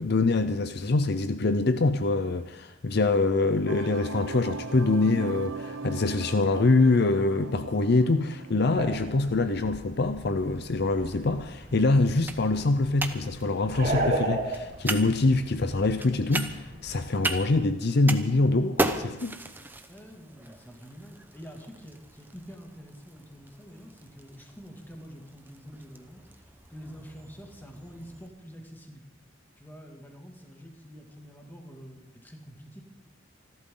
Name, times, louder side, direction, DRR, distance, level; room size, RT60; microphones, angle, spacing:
voice 1, 0.0-19.4, left 3 dB, 55° left, 10 dB, 0.6 m, -24 dB
sound 1, 3.7-9.5, right 3 dB, 85° right, 0.8 m, -39 dB
sound 2, 8.7-17.7, right 1 dB, 50° right, 3.7 m, -36 dB
sound 3, 10.4-28.3, right 2 dB, 10° right, 0.9 m, -38 dB
voice 2, 19.9-29.0 29.6-32.8, equal, 10° left, 2 dB, 2.2 m, -47 dB
27.5 x 12.0 x 3.8 m, 0.96 s
head